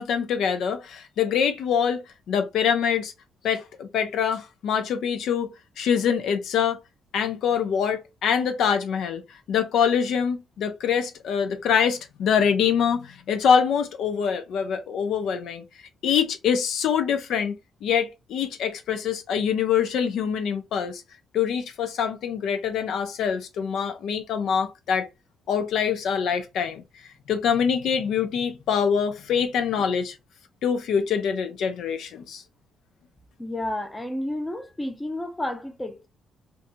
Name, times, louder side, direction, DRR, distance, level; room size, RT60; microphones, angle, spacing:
voice 1, 0.0-3.1 3.4-5.5 5.8-6.8 7.1-9.2 9.5-15.6 16.0-17.6 17.8-21.0 21.3-25.1 25.5-26.8 27.3-30.2 30.6-32.4, left 7 dB, 75° left, 0.5 m, -24 dB
voice 2, 33.4-36.1, left 1 dB, 15° left, 0.6 m, -31 dB
2.5 x 2.3 x 2.6 m
cardioid pair, 90°, 0 cm